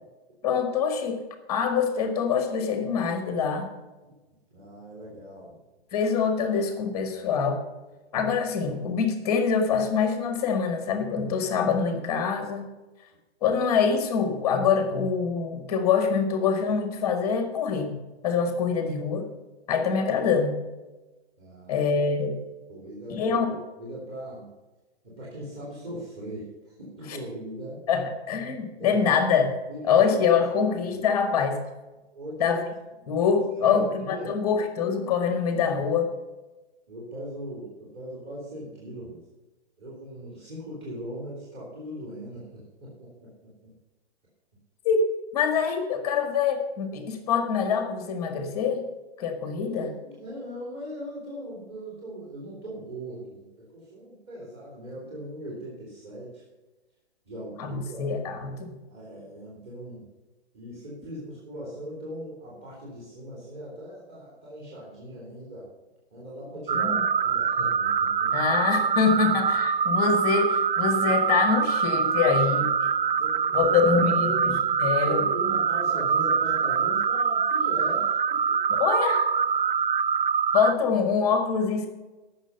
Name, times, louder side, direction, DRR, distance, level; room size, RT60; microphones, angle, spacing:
voice 1, 0.4-1.2 1.5-3.7 5.9-7.6 8.1-12.7 13.4-18.0 18.2-19.3 19.7-20.6 21.7-22.4 23.1-23.6 27.9-29.6 29.9-31.6 32.4-32.6 33.1-33.9 34.3-36.1 44.8-45.0 45.3-48.9 49.2-49.9 57.6-58.8 66.7-67.0 68.3-72.7 73.5-75.2 78.7-79.3 80.5-81.9, left 6 dB, 10° left, 6 dB, 1.2 m, -25 dB
voice 2, 4.5-5.6 21.4-21.9 22.7-23.3 23.8-24.5 25.0-27.8 28.8-29.0 29.7-30.0 30.3-31.0 32.1-32.6 33.5-34.3 36.9-39.2 39.8-43.5 49.6-56.4 57.2-58.1 58.9-60.0 60.5-65.7 66.1-68.3 73.0-74.5 75.1-78.4, right 1 dB, 25° right, -6 dB, 3.3 m, -39 dB
sound 1, 66.7-80.7, right 6 dB, 50° right, 0.6 m, -24 dB
15.5 x 6.2 x 5.7 m, 1.1 s
hypercardioid pair, 175°, 33 cm